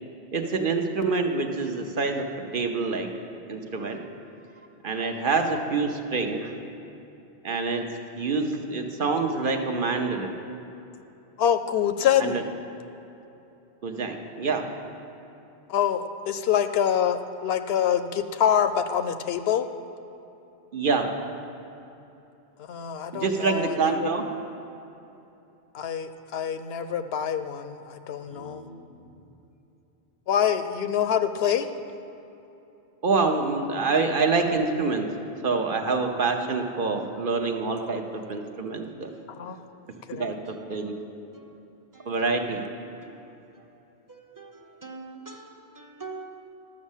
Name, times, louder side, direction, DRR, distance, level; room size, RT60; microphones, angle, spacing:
voice 1, 0.3-2.2 2.5-3.1 3.5-4.0 4.8-6.5 7.4-7.8 8.2-10.3 12.2-12.4 13.8-14.6 20.7-21.1 23.1-24.2 33.0-35.1 35.4-39.1 40.2-41.0 42.1-42.6, right 4 dB, 55° right, 4 dB, 1.0 m, -26 dB
voice 2, 11.4-12.4 15.7-19.7 22.7-24.1 25.7-28.7 30.3-31.7 39.4-39.6 40.1-40.3, left 9 dB, 75° left, 10 dB, 0.8 m, -25 dB
voice 3, 28.3-29.0 40.5-41.0 41.3-41.6 41.9-42.3 43.0-43.6 44.1-46.4, right 3 dB, 20° right, 2 dB, 0.8 m, -45 dB
12.5 x 6.3 x 7.3 m, 2.9 s
omnidirectional pair, 1.1 m